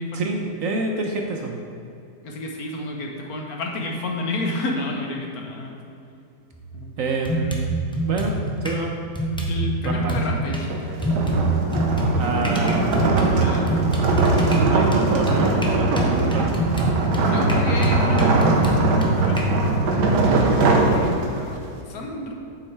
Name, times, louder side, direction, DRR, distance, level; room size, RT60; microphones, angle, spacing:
voice 1, 0.1-1.6 7.0-7.7 8.0-8.3 8.6-8.9 9.8-10.1 12.2-13.0 14.6-16.7, right 3 dB, 65° right, 2 dB, 1.0 m, -27 dB
voice 2, 2.2-5.8 6.7-6.9 9.5-11.0 13.4-13.9 17.2-18.5 19.2-19.4 20.5-21.6 21.9-22.4, left 2 dB, 65° left, 1 dB, 1.4 m, -30 dB
sound 1, 6.5-6.7 7.2-8.8 9.1-10.6 11.0-19.4, right 2 dB, 5° left, 0.5 m, -25 dB
sound 2, 10.6-21.6, right 2 dB, 85° right, 1.5 m, -21 dB
8.6 x 7.5 x 3.3 m, 2.6 s
omnidirectional pair, 1.8 m